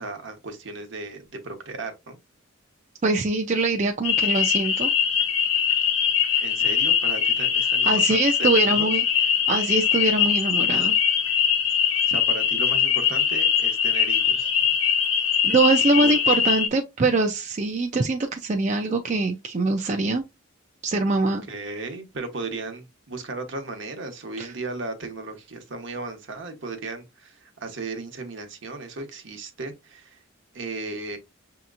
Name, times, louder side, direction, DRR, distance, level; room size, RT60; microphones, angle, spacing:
voice 1, 0.0-2.2 6.4-8.9 12.1-14.5 16.0-16.2 21.2-30.2 30.5-31.2, right 3 dB, 65° right, 1.0 m, -36 dB
voice 2, 3.0-4.9 7.8-9.0 9.5-10.9 15.4-20.2 20.8-21.4 24.4-24.5, right 3 dB, 35° right, 0.4 m, -23 dB
sound 1, 4.0-16.7, left 7 dB, 85° left, 1.0 m, -22 dB
6.1 x 2.9 x 2.4 m
head